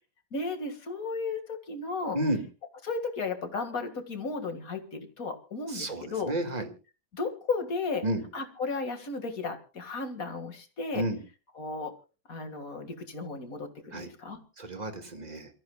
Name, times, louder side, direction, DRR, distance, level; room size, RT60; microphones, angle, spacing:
voice 1, 0.3-2.2 2.8-6.3 7.1-8.1 8.3-11.1 11.5-11.9 12.3-14.4, left 4 dB, 60° left, 7 dB, 2.4 m, -34 dB
voice 2, 5.7-6.6 8.0-8.2 10.9-11.2 13.9-14.1 14.6-15.5, right 1 dB, 25° right, 6 dB, 1.9 m, -31 dB
28.5 x 14.5 x 2.3 m, 0.33 s
omnidirectional pair, 1.7 m